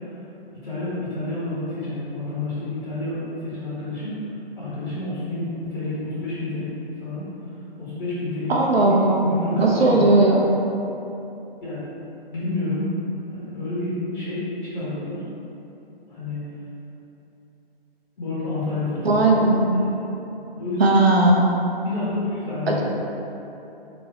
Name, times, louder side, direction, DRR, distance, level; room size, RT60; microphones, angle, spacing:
voice 1, 0.6-4.1 4.5-7.2 7.8-10.2 11.6-11.8 12.3-12.9 13.3-15.2 16.1-16.5 18.2-19.4 19.8-19.9 20.5-21.2 21.8-22.8, left 2 dB, 55° left, -10 dB, 1.5 m, -29 dB
voice 2, 8.5-9.2 9.6-10.4 19.0-19.7 20.8-21.4 22.7-22.8, right 2 dB, 80° right, -1 dB, 0.8 m, -17 dB
4.3 x 3.1 x 2.9 m, 3.0 s
hypercardioid pair, 145°, 30 cm